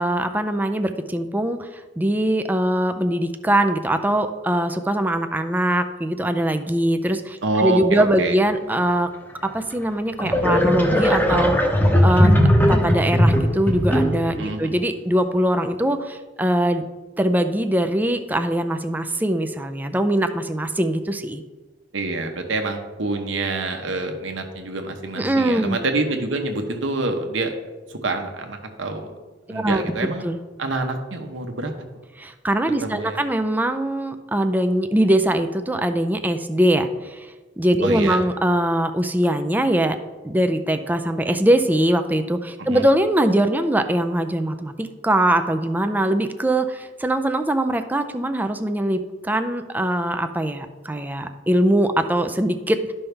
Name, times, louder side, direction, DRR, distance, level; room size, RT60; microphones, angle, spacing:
voice 1, 0.0-1.7 2.0-9.1 9.5-11.6 12.0-12.3 12.7-16.8 17.2-21.4 25.2-25.8 29.5-29.9 30.2-30.4 32.2-37.3 37.6-40.0 40.2-52.9, right 1 dB, 10° right, 7 dB, 0.4 m, -22 dB
voice 2, 7.4-8.4 14.4-14.8 21.9-27.5 27.9-29.1 29.5-30.2 30.6-31.7 32.8-33.2 37.8-38.2 42.6-42.8, right 2 dB, 85° right, 5 dB, 1.1 m, -26 dB
sound 1, 9.5-9.6 10.2-14.4, equal, 10° left, 0.9 m, -18 dB
12.0 x 5.5 x 3.4 m, 1.3 s
head